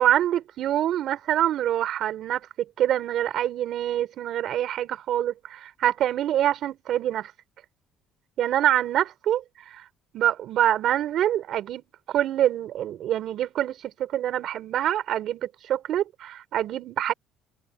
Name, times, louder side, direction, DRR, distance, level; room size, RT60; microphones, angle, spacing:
voice 1, 0.0-2.4 2.8-7.3 8.4-9.8 10.1-17.1, right 11 dB, 65° right, 4.5 m, -25 dB
cardioid pair, 100°, 0 cm